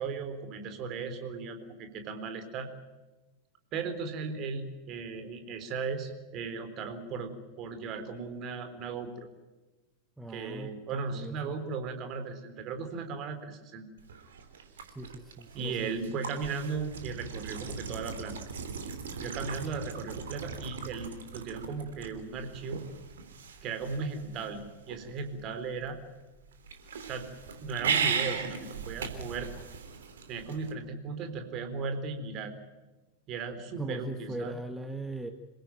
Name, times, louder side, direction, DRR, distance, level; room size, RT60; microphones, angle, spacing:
voice 1, 0.0-2.7 3.7-9.3 10.3-13.9 15.5-18.4 19.2-22.8 23.6-26.0 27.1-27.3 27.6-29.5 30.3-32.5 33.3-34.6, right 4 dB, 35° right, 7 dB, 4.0 m, -36 dB
voice 2, 10.2-11.6 14.9-15.9 33.8-35.3, right 2 dB, 5° right, 7 dB, 1.6 m, -40 dB
sound 1, 14.0-30.7, right 6 dB, 65° right, 3.3 m, -38 dB
27.0 x 17.5 x 9.2 m, 1.1 s
figure-of-eight pair, 90°, 0 cm